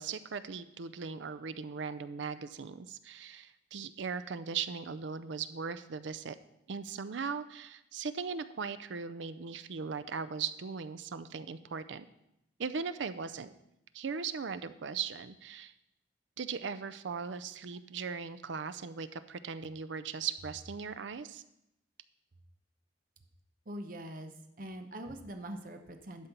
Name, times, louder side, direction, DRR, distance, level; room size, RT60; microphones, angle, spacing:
voice 1, 0.0-6.4 6.7-12.0 12.6-13.5 13.9-15.7 16.4-21.4, right 6 dB, 75° right, 12 dB, 0.5 m, -38 dB
voice 2, 23.7-26.3, right 1 dB, 45° right, 5 dB, 0.8 m, -43 dB
11.5 x 4.4 x 6.7 m, 0.83 s
head